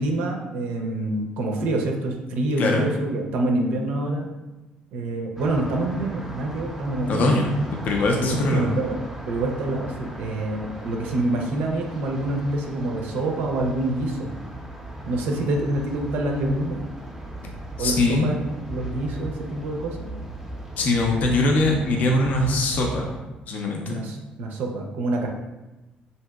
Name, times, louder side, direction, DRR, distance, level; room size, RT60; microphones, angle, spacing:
voice 1, 0.0-4.3 4.9-7.4 8.2-14.3 15.1-16.8 17.8-20.1 21.7-21.8 23.9-25.3, right 2 dB, 75° right, 1 dB, 0.4 m, -26 dB
sound 1, 5.4-23.2, right 1 dB, 10° right, 0.5 m, -37 dB
voice 2, 7.1-7.5 7.8-8.7 17.8-18.3 20.8-23.1 23.5-24.0, left 2 dB, 55° left, 1 dB, 0.4 m, -22 dB
2.9 x 2.7 x 2.3 m, 1.1 s
cardioid pair, 90°, 3 cm